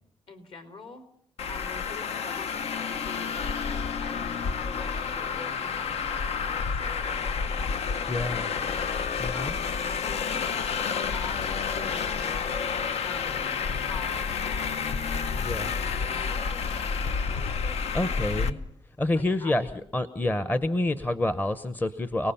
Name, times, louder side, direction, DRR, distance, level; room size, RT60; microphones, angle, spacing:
voice 1, 0.3-1.1 1.5-9.8 10.0-10.5 11.0-12.4 13.0-14.8 15.2-18.6 19.1-19.7, left 4 dB, 55° left, 7 dB, 3.6 m, -45 dB
Traffic noise roadway noise, 1.4-18.5, left 6 dB, 75° left, 0.9 m, -30 dB
voice 2, 8.1-8.5 9.2-9.6 15.4-15.7 17.9-18.6 19.0-22.3, left 1 dB, 15° left, 12 dB, 0.8 m, -28 dB
sound 1, 13.5-19.0, left 2 dB, 40° left, 4.0 m, -55 dB
30.0 x 19.0 x 5.8 m, 0.65 s
wide cardioid pair, 145°, 11 cm